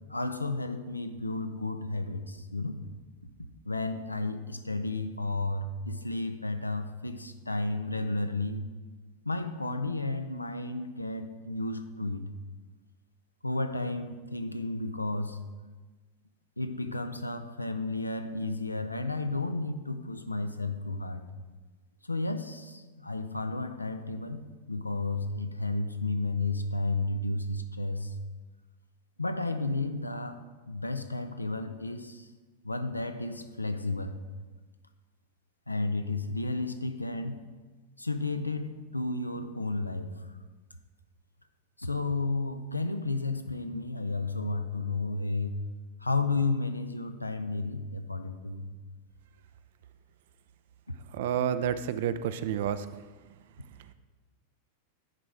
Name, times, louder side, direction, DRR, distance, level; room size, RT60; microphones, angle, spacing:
voice 1, 0.1-2.8 3.4-8.6 9.2-12.2 13.4-15.4 16.6-21.2 22.0-28.1 29.2-32.3 32.6-34.2 35.7-37.4 38.0-40.1 41.8-45.7 46.0-48.6 50.9-51.0, left 2 dB, 85° left, 9 dB, 0.4 m, -32 dB
voice 2, 51.1-52.9, right 9 dB, 55° right, 13 dB, 0.4 m, -29 dB
9.8 x 4.2 x 4.7 m, 1.3 s
figure-of-eight pair, 90°, 0 cm